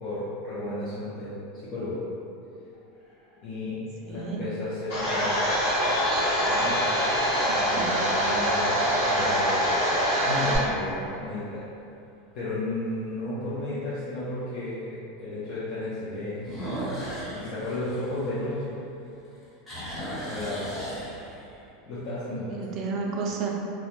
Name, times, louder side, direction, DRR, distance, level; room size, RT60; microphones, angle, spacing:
voice 1, 0.0-2.0 3.4-3.8 4.1-5.6 6.4-7.1 7.6-8.8 9.1-9.7 10.3-11.6 12.3-16.9 17.3-18.8 20.2-20.8 21.9-22.6, left 2 dB, 50° left, -11 dB, 0.6 m, -33 dB
sound 1, 2.7-3.4 4.1-4.2 9.4-9.9 10.3-10.4 11.0-11.1 11.3-11.4 13.0-13.1 16.4-18.9 19.2-21.6, equal, 10° left, 0.8 m, -37 dB
voice 2, 4.0-4.5 7.5-7.9 13.5-13.8 22.5-23.5, right 4 dB, 40° right, 0 dB, 0.3 m, -32 dB
Domestic sounds home sounds, 4.9-10.6, equal, 70° left, 1.3 m, -24 dB
2.2 x 2.1 x 3.0 m, 2.7 s
supercardioid pair, 135°, 0 cm